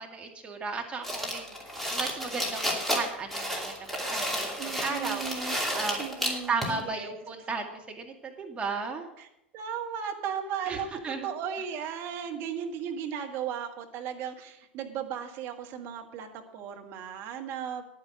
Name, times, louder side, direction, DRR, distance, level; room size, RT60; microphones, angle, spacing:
voice 1, 0.0-1.5 1.9-4.5 4.8-5.2 5.7-6.0 6.5-7.7 8.0-9.0 10.7-10.8 11.0-11.3, right 4 dB, 20° right, 2 dB, 2.2 m, -34 dB
sound 1, 1.0-6.8, equal, 5° left, 2.7 m, -32 dB
voice 2, 4.6-5.6 6.0-7.2 9.2-9.3 9.5-17.9, right 8 dB, 40° right, 4 dB, 1.7 m, -36 dB
10.5 x 9.7 x 6.2 m, 0.82 s
figure-of-eight pair, 85°, 6 cm